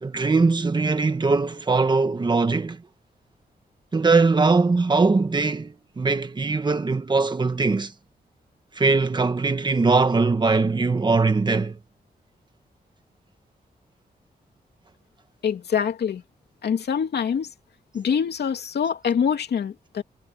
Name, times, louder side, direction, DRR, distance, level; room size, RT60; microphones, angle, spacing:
voice 1, 0.0-2.8 3.9-7.9 8.7-11.8, right 3 dB, 25° right, 1.4 m, -21 dB
voice 2, 15.4-16.2 16.6-17.5 17.9-20.0, left 7 dB, 80° left, 2.8 m, -25 dB
wide cardioid pair, 170°, 17 cm